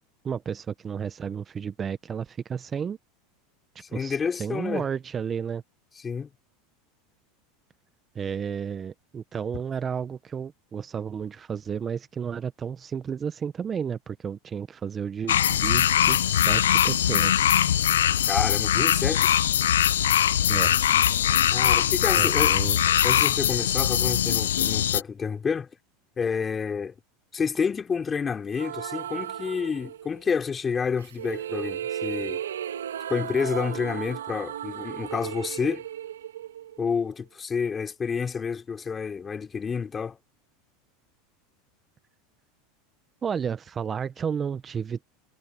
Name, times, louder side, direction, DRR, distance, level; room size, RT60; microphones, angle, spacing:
voice 1, 0.2-3.0 3.9-5.6 8.1-17.6 20.5-20.7 22.2-22.8 43.2-45.1, right 7 dB, 30° right, 1.1 m, -32 dB
voice 2, 3.8-4.9 6.0-6.3 18.3-19.3 21.5-22.5 23.0-25.7 26.2-26.9 27.3-32.4 33.1-35.8 36.8-40.2, left 6 dB, 25° left, 3.4 m, -29 dB
sound 1, 15.3-25.0, left 10 dB, 85° left, 0.6 m, -22 dB
sound 2, 28.6-30.3 31.0-37.1, right 10 dB, 90° right, 2.4 m, -35 dB
hypercardioid pair, 95°, 0 cm